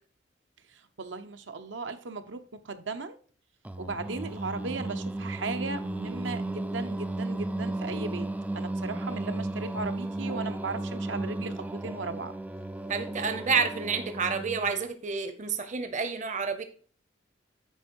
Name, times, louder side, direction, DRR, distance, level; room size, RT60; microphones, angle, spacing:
voice 1, 0.7-3.2 3.8-8.3 8.5-12.3, right 3 dB, 70° right, 0.8 m, -37 dB
Singing, 3.6-14.8, right 2 dB, 5° right, 0.3 m, -34 dB
voice 2, 12.9-16.6, right 5 dB, 40° right, 0.8 m, -29 dB
9.0 x 4.5 x 4.5 m
head